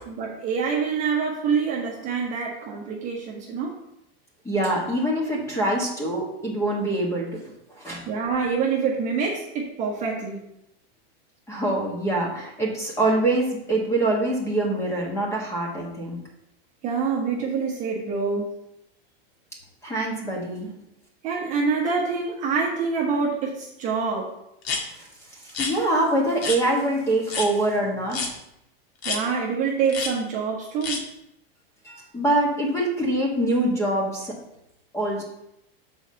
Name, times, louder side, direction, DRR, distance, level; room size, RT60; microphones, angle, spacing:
voice 1, 0.0-3.8 8.1-10.4 16.8-18.5 21.2-24.3 29.0-31.1, right 5 dB, 25° right, -3 dB, 1.2 m, -26 dB
voice 2, 4.4-7.4 7.7-8.0 11.5-16.2 19.8-20.7 25.0-25.1 25.4-28.3 31.8-34.3 34.9-35.2, right 1 dB, 10° left, -3 dB, 1.6 m, -24 dB
sound 1, 24.6-24.8 25.5-25.7 26.4-26.6 27.3-27.5 28.1-28.3 29.0-29.2 29.9-30.1 30.8-31.0, left 4 dB, 85° left, 1.7 m, -28 dB
6.3 x 4.1 x 6.4 m, 0.82 s
supercardioid pair, 160°, 30 cm